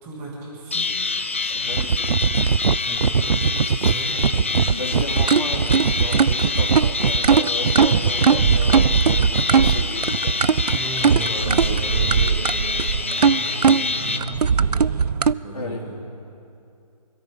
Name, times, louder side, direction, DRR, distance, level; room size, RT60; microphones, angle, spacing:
voice 1, 0.0-0.9 2.8-3.4 3.8-4.5 10.8-16.0, right 2 dB, 10° right, -4 dB, 2.0 m, -35 dB
sound 1, 0.7-14.2, left 3 dB, 20° left, 0.4 m, -26 dB
voice 2, 1.4-2.2 3.7-4.1 4.6-10.4 15.5-15.9, left 2 dB, 70° left, -6 dB, 3.0 m, -35 dB
sound 2, 1.7-15.3, right 6 dB, 85° right, 0.5 m, -19 dB
26.0 x 13.5 x 3.6 m, 2.6 s
figure-of-eight pair, 165°, 20 cm